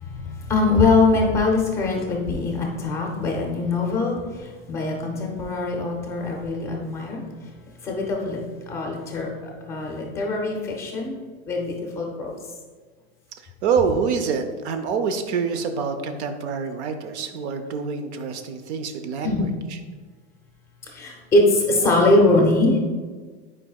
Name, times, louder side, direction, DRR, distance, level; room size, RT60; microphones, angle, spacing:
voice 1, 0.0-7.2 7.8-8.4 8.7-9.3 9.7-11.1 11.5-12.3 19.2-19.5 20.9-22.8, left 2 dB, 10° left, 0 dB, 0.5 m, -22 dB
voice 2, 13.6-19.5, right 6 dB, 85° right, 7 dB, 0.7 m, -26 dB
8.9 x 4.8 x 2.3 m, 1.4 s
supercardioid pair, 180°, 33 cm